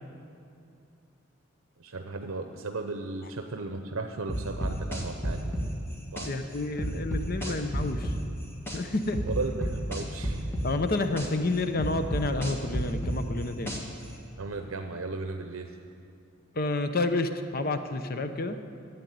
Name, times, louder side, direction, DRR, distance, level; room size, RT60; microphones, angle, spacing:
voice 1, 1.8-5.6 6.1-6.4 7.4-7.6 9.3-10.4 14.4-15.7, right 3 dB, 80° right, 5 dB, 0.7 m, -35 dB
sound 1, 4.3-6.3 6.8-8.8 9.1-11.3 11.8-14.0, equal, 10° left, 1.6 m, -31 dB
voice 2, 6.3-8.1 8.7-9.2 10.6-13.7 16.5-18.6, left 2 dB, 45° left, 8 dB, 0.7 m, -29 dB
13.0 x 8.2 x 9.9 m, 2.6 s
head